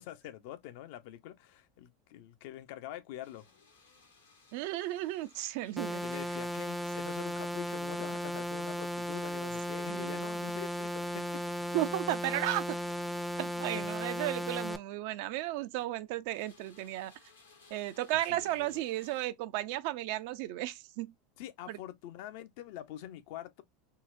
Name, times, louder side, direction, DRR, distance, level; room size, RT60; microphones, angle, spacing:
voice 1, 0.0-3.5 6.0-11.5 13.7-13.9 18.3-18.8 21.4-23.6, left 12 dB, 65° left, 0.5 m, -45 dB
sound 1, 3.2-7.6 9.9-10.4 10.8-13.5 14.5-14.7 15.2-16.0 16.3-19.3, left 4 dB, 85° left, 0.9 m, -62 dB
voice 2, 4.5-6.0 9.9-10.3 11.7-12.8 13.4-17.1 17.7-21.1 21.7-21.8, right 15 dB, 65° right, 0.4 m, -34 dB
sound 2, 5.8-14.8, left 1 dB, ahead, 0.4 m, -36 dB
3.7 x 2.0 x 2.5 m
hypercardioid pair, 85°, 0 cm